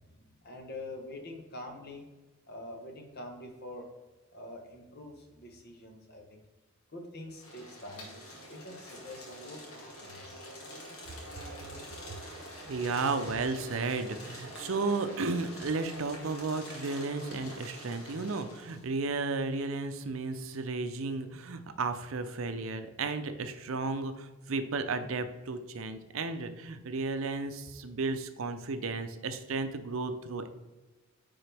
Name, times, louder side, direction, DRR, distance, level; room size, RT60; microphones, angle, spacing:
voice 1, 0.4-2.0 2.5-3.9 4.3-6.4 6.9-8.1 8.5-10.4, left 1 dB, 45° left, 3 dB, 1.1 m, -45 dB
sound 1, 7.3-18.9, equal, 85° left, 1.8 m, -46 dB
voice 2, 12.7-30.5, right 3 dB, 70° right, 9 dB, 0.6 m, -33 dB
9.0 x 3.9 x 3.3 m, 1.2 s
head